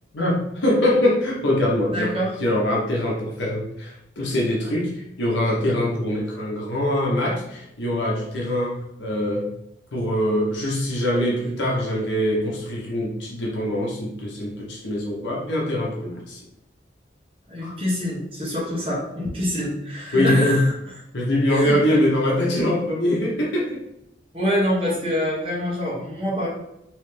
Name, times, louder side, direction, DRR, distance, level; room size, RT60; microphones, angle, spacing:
voice 1, 0.1-2.1 2.4-9.5 9.9-16.4 17.6-17.7 20.1-20.6 21.1-23.8, left 1 dB, 75° left, -3 dB, 0.8 m, -23 dB
voice 2, 1.9-2.3 17.5-20.7 21.5-22.0 24.3-26.5, equal, 30° right, -5 dB, 1.3 m, -25 dB
3.2 x 3.0 x 3.2 m, 0.85 s
head